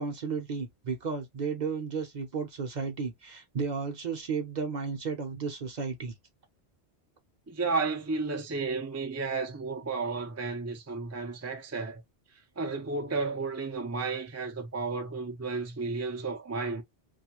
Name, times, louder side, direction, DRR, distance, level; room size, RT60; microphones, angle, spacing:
voice 1, 0.0-6.1, right 5 dB, 45° right, 0.7 m, -33 dB
voice 2, 7.5-12.0 12.6-16.8, right 4 dB, 25° right, 0.4 m, -32 dB
2.7 x 2.4 x 2.8 m
omnidirectional pair, 1.1 m